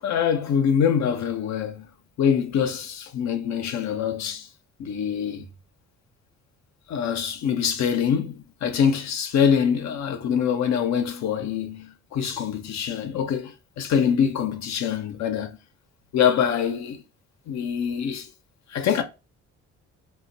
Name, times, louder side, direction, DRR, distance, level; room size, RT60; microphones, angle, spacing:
voice 1, 0.0-1.9 2.2-4.5 4.8-5.5 6.9-15.6 16.1-17.0 17.5-18.3 18.7-19.0, left 7 dB, 65° left, 0.6 m, -24 dB
2.2 x 2.1 x 3.7 m
cardioid pair, 90°, 30 cm